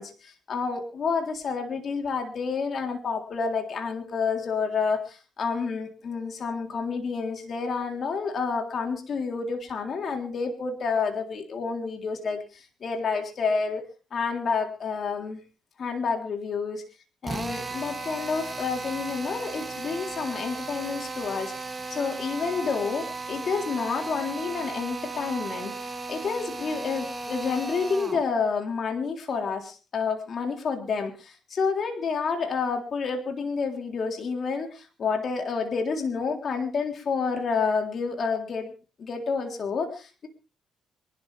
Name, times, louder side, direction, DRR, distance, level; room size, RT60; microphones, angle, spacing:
voice 1, 0.0-13.8 14.1-15.4 15.8-16.8 17.2-38.7 39.0-40.3, left 5 dB, 50° left, 3 dB, 3.7 m, -29 dB
Drill, 17.2-28.3, right 3 dB, 20° right, 2.5 m, -36 dB
25.5 x 12.0 x 3.5 m, 0.35 s
cardioid pair, 90°, 0 cm